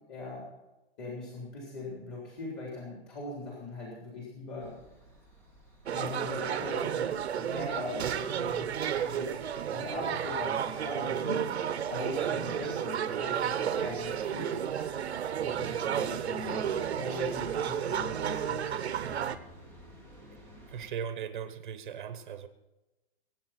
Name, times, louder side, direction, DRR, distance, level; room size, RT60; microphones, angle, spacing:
voice 1, 0.1-0.4 1.0-4.7 5.9-7.1 7.4-9.4 9.7-14.6 15.4-16.7 17.0-19.2, left 3 dB, 25° left, -4 dB, 3.6 m, -40 dB
sound 1, 4.6-20.9, equal, 5° left, 1.1 m, -55 dB
sound 2, 5.9-19.4, right 9 dB, 90° right, 1.3 m, -32 dB
voice 2, 20.7-22.5, right 8 dB, 50° right, 10 dB, 1.2 m, -38 dB
22.0 x 8.9 x 4.4 m, 1.0 s
hypercardioid pair, 175°, 32 cm